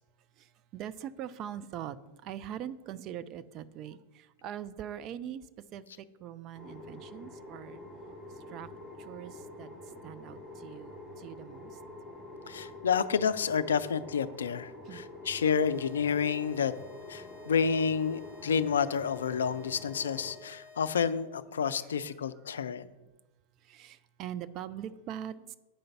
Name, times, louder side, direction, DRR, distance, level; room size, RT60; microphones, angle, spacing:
voice 1, 0.7-2.0 2.2-5.4 5.7-5.8 6.2-7.8 8.5-8.7 9.1-9.7 10.0-11.7 14.8-15.0 23.7-25.6, right 10 dB, 40° right, 13 dB, 0.4 m, -42 dB
sound 1, 6.5-20.3, left 1 dB, 5° right, 2.1 m, -47 dB
voice 2, 12.5-16.7 17.1-22.9, left 6 dB, 70° left, 14 dB, 0.4 m, -29 dB
sound 2, 15.4-21.4, left 4 dB, 25° right, 1.7 m, -54 dB
8.8 x 5.1 x 5.7 m, 1.1 s
figure-of-eight pair, 90°, 0 cm